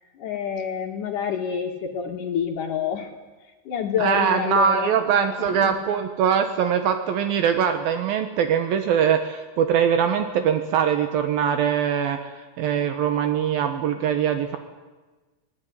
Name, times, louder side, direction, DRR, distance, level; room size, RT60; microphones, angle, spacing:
voice 1, 0.1-3.1 3.7-5.8, left 7 dB, 60° left, 3 dB, 3.1 m, -28 dB
voice 2, 4.0-14.6, right 8 dB, 75° right, 7 dB, 3.0 m, -22 dB
27.0 x 19.0 x 9.6 m, 1.3 s
omnidirectional pair, 4.4 m